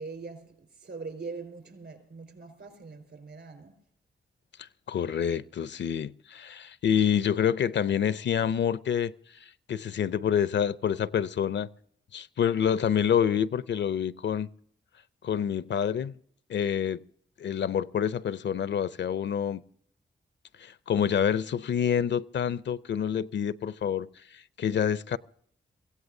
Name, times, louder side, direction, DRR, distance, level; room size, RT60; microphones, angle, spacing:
voice 1, 0.0-3.8, right 4 dB, 65° right, 4.5 m, -42 dB
voice 2, 4.9-9.1 9.4-11.7 12.1-14.5 15.2-16.1 16.5-17.0 17.4-19.6 20.6-25.2, left 8 dB, 65° left, 0.5 m, -27 dB
24.0 x 16.0 x 2.7 m
cardioid pair, 50°, 20 cm